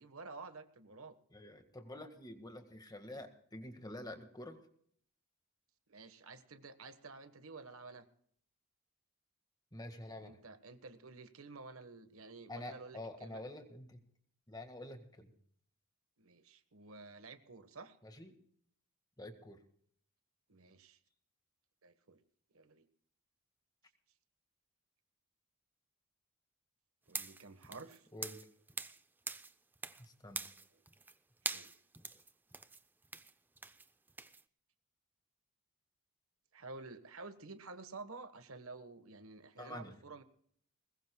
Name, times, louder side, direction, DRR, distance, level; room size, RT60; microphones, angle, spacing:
voice 1, 0.0-1.2 3.1-3.2 5.9-8.1 10.0-13.4 16.2-18.0 20.5-21.0 21.8-22.2 22.5-22.9 27.1-28.1 30.7-30.8 31.5-31.7 36.5-40.2, right 3 dB, 70° right, 10 dB, 1.3 m, -51 dB
voice 2, 1.3-4.6 9.7-10.4 12.5-14.0 14.5-15.3 18.0-18.4 19.2-19.6 28.1-28.5 30.0-30.4 39.6-40.0, left 1 dB, 15° left, 6 dB, 1.7 m, -48 dB
sound 1, 27.1-29.0 29.3-30.0 30.3-31.1 31.4-34.4, right 3 dB, 10° right, 0.5 m, -44 dB
21.0 x 20.5 x 2.3 m, 0.63 s
head